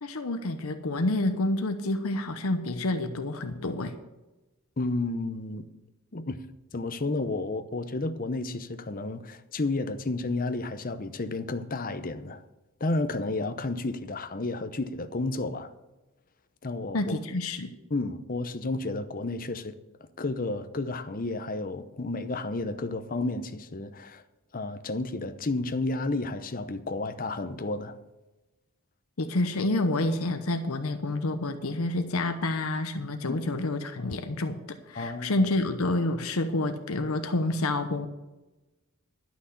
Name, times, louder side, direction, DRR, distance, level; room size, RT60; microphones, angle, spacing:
voice 1, 0.0-3.9 16.9-17.7 29.2-34.6 34.9-38.1, left 2 dB, 75° left, 0.9 m, -28 dB
voice 2, 4.8-5.7 6.1-6.4 6.7-12.4 12.8-15.7 16.6-17.0 17.9-19.7 20.2-24.2 24.5-28.0 33.3-33.4 34.9-35.5, left 2 dB, 40° left, 0.7 m, -31 dB
11.5 x 6.1 x 8.5 m
head